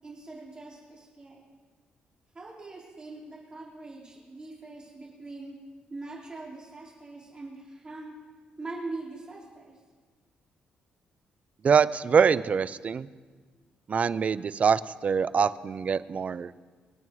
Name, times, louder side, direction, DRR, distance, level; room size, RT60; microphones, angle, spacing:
voice 1, 0.0-1.4 2.3-5.5 5.9-8.1 8.6-9.7, right 2 dB, 25° right, -6 dB, 4.5 m, -42 dB
voice 2, 11.6-13.1 13.9-16.5, right 6 dB, 40° right, 16 dB, 0.4 m, -24 dB
25.5 x 9.1 x 3.2 m, 1.5 s
cardioid pair, 105°, 3 cm